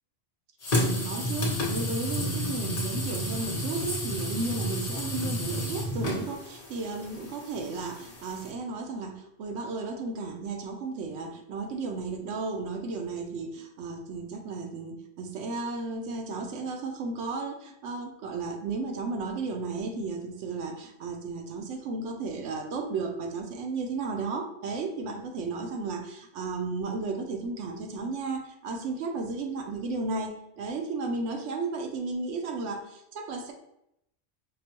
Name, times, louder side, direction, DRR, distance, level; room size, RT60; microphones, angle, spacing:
sound 1, 0.6-8.5, equal, 50° left, 1.0 m, -31 dB
voice 1, 0.8-33.5, right 3 dB, 80° right, 3 dB, 1.0 m, -34 dB
5.1 x 2.2 x 2.9 m, 0.79 s
omnidirectional pair, 1.2 m